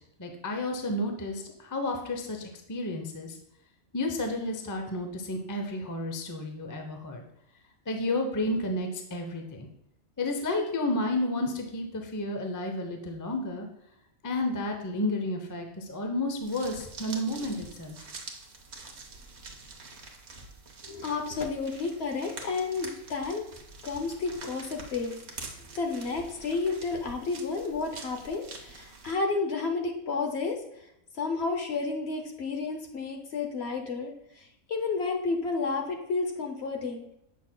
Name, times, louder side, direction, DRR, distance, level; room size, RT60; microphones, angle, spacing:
voice 1, 0.2-3.3 3.9-7.2 7.9-9.7 10.2-13.7 14.2-18.0, left 1 dB, 30° left, 3 dB, 0.3 m, -31 dB
sound 1, 16.4-29.1, right 3 dB, 50° right, 1.1 m, -46 dB
voice 2, 20.8-23.4 23.8-30.6 31.2-37.0, left 4 dB, 55° left, 3 dB, 0.8 m, -31 dB
7.4 x 6.0 x 2.2 m, 0.78 s
omnidirectional pair, 1.5 m